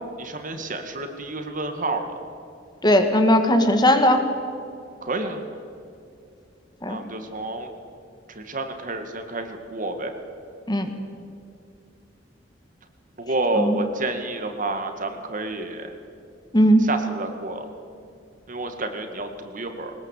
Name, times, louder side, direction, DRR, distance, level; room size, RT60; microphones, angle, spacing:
voice 1, 0.2-2.1 5.0-5.4 6.9-7.7 8.4-10.1 13.2-15.9 16.8-17.7 18.5-19.9, right 2 dB, 45° right, 6 dB, 2.0 m, -29 dB
voice 2, 2.8-4.2 6.8-7.0 10.7-10.9 13.6-13.8 16.5-16.9, equal, 25° left, 6 dB, 1.9 m, -18 dB
21.5 x 20.0 x 8.4 m, 2.5 s
head